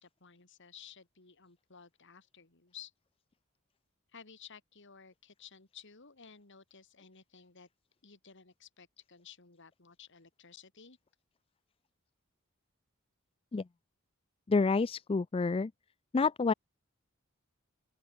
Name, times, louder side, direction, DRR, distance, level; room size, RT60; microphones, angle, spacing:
voice 1, 0.0-2.9 4.1-7.7 8.0-11.0, left 7 dB, 60° left, 2.5 m, -55 dB
voice 2, 14.5-15.7 16.1-16.5, left 4 dB, 25° left, 0.4 m, -28 dB
open air
head